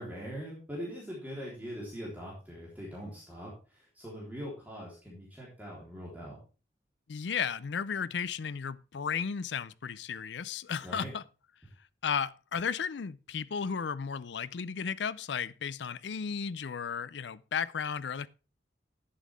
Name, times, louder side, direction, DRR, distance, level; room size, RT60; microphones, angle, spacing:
voice 1, 0.0-6.4 10.8-11.1, equal, 10° right, 3.6 m, -42 dB
voice 2, 7.1-11.2 12.0-18.3, left 6 dB, 65° left, 0.5 m, -34 dB
11.5 x 8.4 x 3.5 m
head